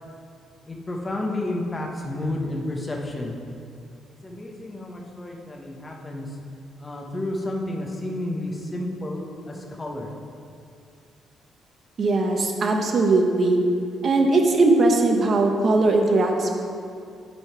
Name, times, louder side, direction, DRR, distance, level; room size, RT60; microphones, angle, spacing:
voice 1, 0.7-3.3 4.2-6.3 6.8-10.1, left 1 dB, 20° left, -1 dB, 1.2 m, -31 dB
voice 2, 12.0-13.6 14.0-16.5, right 2 dB, 50° right, 3 dB, 1.0 m, -19 dB
11.0 x 4.0 x 4.7 m, 2.4 s
cardioid pair, 90°, 0 cm